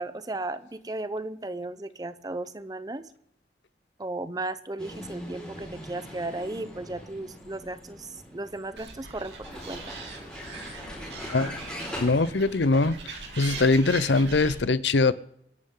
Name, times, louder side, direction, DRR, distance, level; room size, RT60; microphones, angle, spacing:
voice 1, 0.0-3.0 4.0-9.3 9.7-9.8, right 2 dB, 20° right, 13 dB, 0.7 m, -35 dB
Vehicle, 4.8-13.9, equal, 5° left, 5.0 m, -42 dB
Animal, 8.8-14.6, right 4 dB, 80° right, 2.9 m, -41 dB
voice 2, 12.0-12.9 13.4-15.1, left 3 dB, 90° left, 17 dB, 0.7 m, -22 dB
26.5 x 11.0 x 3.8 m, 0.74 s
head